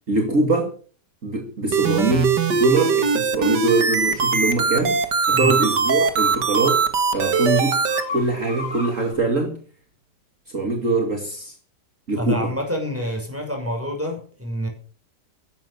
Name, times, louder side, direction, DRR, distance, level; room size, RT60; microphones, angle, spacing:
voice 1, 0.1-0.7 1.2-6.9 7.1-7.8 8.1-9.6 10.5-11.6 12.1-12.5, right 3 dB, 45° right, 2.7 m, -23 dB
sound 1, 1.7-8.0, right 5 dB, 75° right, 2.4 m, -21 dB
sound 2, 4.0-9.1, left 4 dB, 25° left, 7.1 m, -37 dB
voice 2, 12.1-14.7, equal, 5° right, 6.1 m, -27 dB
15.0 x 12.0 x 7.0 m
omnidirectional pair, 1.9 m